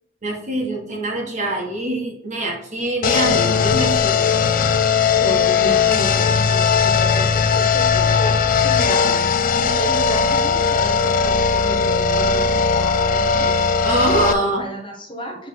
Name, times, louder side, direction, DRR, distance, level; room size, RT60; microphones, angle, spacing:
voice 1, 0.2-4.3 13.8-14.7, right 1 dB, 40° right, 0 dB, 1.4 m, -24 dB
sound 1, 3.0-14.3, left 6 dB, 45° left, 0.4 m, -18 dB
voice 2, 5.2-13.6 14.3-15.5, right 1 dB, 25° left, 1 dB, 1.2 m, -32 dB
7.4 x 3.5 x 3.7 m, 0.71 s
head